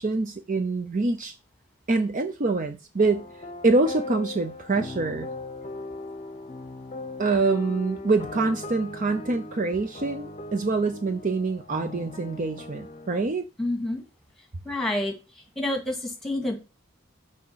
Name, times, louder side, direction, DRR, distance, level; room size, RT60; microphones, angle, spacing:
voice 1, 0.0-1.3 1.9-3.3 3.6-5.3 7.2-13.5, right 3 dB, 35° right, 0.5 m, -25 dB
sound 1, 3.0-13.2, left 2 dB, 30° left, 0.8 m, -39 dB
voice 2, 13.6-14.0 14.6-15.1 15.6-16.6, left 1 dB, ahead, 2.0 m, -28 dB
6.4 x 5.1 x 5.6 m
head